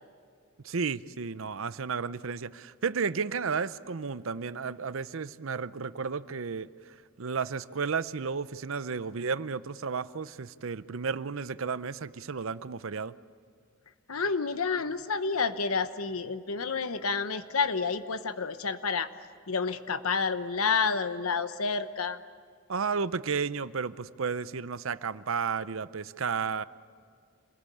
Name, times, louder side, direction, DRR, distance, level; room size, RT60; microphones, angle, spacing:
voice 1, 0.6-6.9 7.2-13.1 22.7-26.6, right 5 dB, 65° right, 15 dB, 0.7 m, -33 dB
voice 2, 14.1-19.1 19.5-22.2, left 5 dB, 80° left, 11 dB, 1.0 m, -29 dB
27.5 x 21.5 x 8.6 m, 2.2 s
head